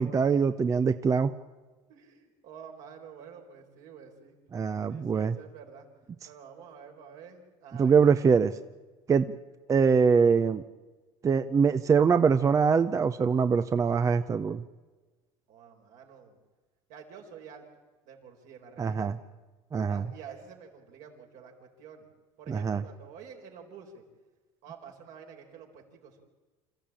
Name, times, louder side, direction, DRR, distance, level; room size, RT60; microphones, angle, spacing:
voice 1, 0.0-1.3 4.5-5.3 7.8-8.5 9.1-9.3 9.7-10.6 11.2-14.6 18.8-19.2 19.7-20.0 22.5-22.8, right 6 dB, 25° right, 11 dB, 0.6 m, -23 dB
voice 2, 1.9-4.4 4.9-5.9 6.3-8.3 15.5-16.4 16.9-17.6 18.0-19.2 19.8-22.1 22.4-24.0 24.6-26.2, right 7 dB, 65° right, 2 dB, 4.3 m, -49 dB
27.5 x 14.0 x 8.9 m, 1.3 s
cardioid pair, 125°, 14 cm